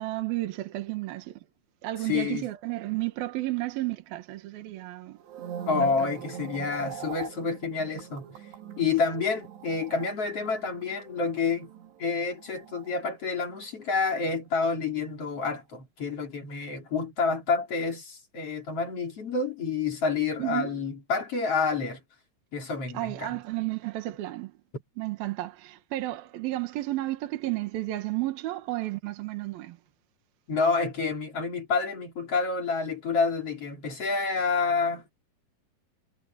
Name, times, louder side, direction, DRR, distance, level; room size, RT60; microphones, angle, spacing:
voice 1, 0.0-1.4 1.8-5.2 5.8-6.1 20.4-20.8 22.9-24.6 25.0-29.8, right 17 dB, 70° right, 3.0 m, -32 dB
voice 2, 2.0-2.5 5.7-8.3 8.8-11.7 12.0-22.0 22.5-23.3 30.5-35.1, left 4 dB, 40° left, 3.7 m, -28 dB
sound 1, 5.2-13.6 13.8-14.2, right 8 dB, 90° right, 4.6 m, -42 dB
omnidirectional pair, 4.7 m